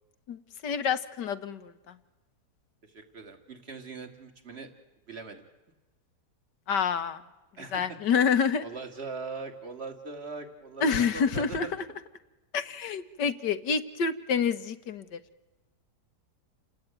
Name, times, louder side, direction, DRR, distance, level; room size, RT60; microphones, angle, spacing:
voice 1, 0.3-1.7 6.7-7.2 7.7-8.6 10.8-11.7 12.5-15.2, left 6 dB, 85° left, 11 dB, 1.9 m, -27 dB
voice 2, 2.8-4.7 5.1-5.5 7.6-8.0 8.6-11.7, right 4 dB, 35° right, 5 dB, 2.8 m, -41 dB
29.5 x 19.0 x 9.2 m, 1.1 s
omnidirectional pair, 1.8 m